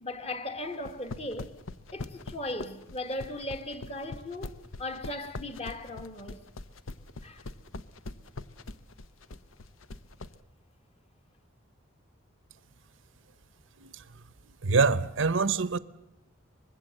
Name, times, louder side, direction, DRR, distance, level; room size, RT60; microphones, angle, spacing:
voice 1, 0.0-1.6 1.9-6.4 7.2-7.4, left 1 dB, 30° left, 1.4 m, -37 dB
sound 1, 0.7-10.3, left 3 dB, 80° left, 0.8 m, -41 dB
voice 2, 14.6-15.8, right 4 dB, 70° right, 0.8 m, -25 dB
24.5 x 21.0 x 7.6 m
head